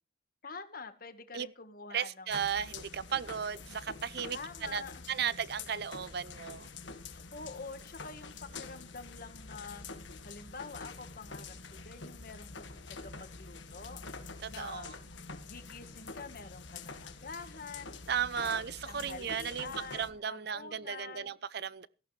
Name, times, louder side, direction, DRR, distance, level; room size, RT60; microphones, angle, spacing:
voice 1, 0.4-2.4 4.3-5.0 7.1-9.9 10.2-14.0 14.5-14.9 15.4-18.0 18.4-21.4, left 4 dB, 50° left, 1.5 m, -47 dB
voice 2, 1.9-4.8 5.1-6.7 14.4-14.9 18.1-21.9, right 7 dB, 60° right, 0.6 m, -35 dB
sound 1, 2.3-20.1, left 4 dB, 90° left, 1.5 m, -47 dB
17.0 x 14.0 x 3.3 m
head